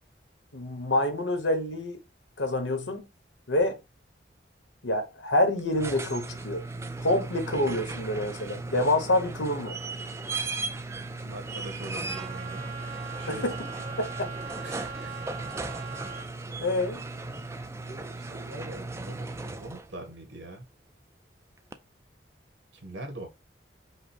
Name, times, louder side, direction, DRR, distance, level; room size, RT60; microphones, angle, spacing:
voice 1, 0.5-2.0 2.4-3.1 3.5-3.8 4.8-6.6 7.0-9.8 13.3-13.5 14.0-14.3 16.6-17.0, left 1 dB, 85° left, 1.1 m, -27 dB
sound 1, 5.6-20.0 21.7-21.8, right 3 dB, 15° right, 0.3 m, -37 dB
voice 2, 10.9-12.6 13.2-13.5 14.6-15.3 15.7-15.8 17.8-19.3 19.5-20.7 22.8-23.3, right 1 dB, 85° right, 1.6 m, -42 dB
Trumpet, 12.0-16.3, right 5 dB, 55° right, 1.8 m, -40 dB
5.0 x 2.1 x 4.3 m
head